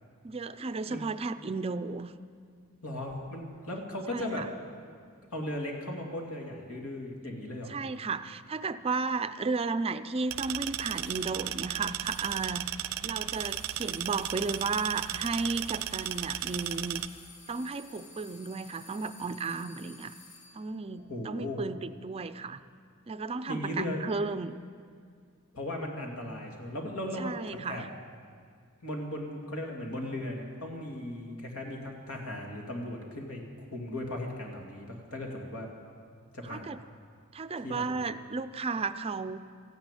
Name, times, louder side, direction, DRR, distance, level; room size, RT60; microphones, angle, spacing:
voice 1, 0.2-2.1 4.1-4.5 7.7-12.7 13.0-17.0 17.5-20.1 20.5-22.6 23.1-24.5 27.2-27.9 36.4-36.8 37.3-39.4, right 4 dB, 25° right, 12 dB, 0.4 m, -34 dB
voice 2, 2.8-4.5 5.3-7.8 21.0-21.6 23.5-24.0 25.5-27.8 28.8-35.7 36.3-36.7 37.6-37.9, left 1 dB, 85° left, 1 dB, 2.6 m, -37 dB
sound 1, 10.3-17.1, right 12 dB, 85° right, 0.5 m, -35 dB
sound 2, 10.8-11.3 12.0-12.6 13.3-20.7, left 2 dB, 45° left, 3.1 m, -52 dB
14.5 x 10.5 x 9.0 m, 2.1 s
head